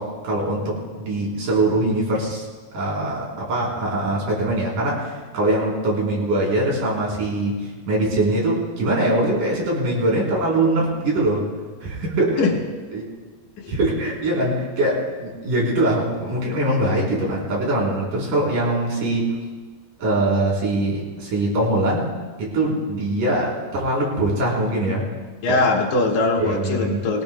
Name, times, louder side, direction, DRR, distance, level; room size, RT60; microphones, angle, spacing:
voice 1, 0.0-2.5 2.7-11.5 11.8-12.5 12.9-13.0 13.7-19.3 20.0-22.1 22.4-25.1 25.5-25.6 26.4-27.0, right 1 dB, 70° right, -4 dB, 5.4 m, -22 dB
voice 2, 25.4-27.2, left 3 dB, 65° left, -1 dB, 3.2 m, -21 dB
23.0 x 19.0 x 2.2 m, 1.4 s
omnidirectional pair, 3.8 m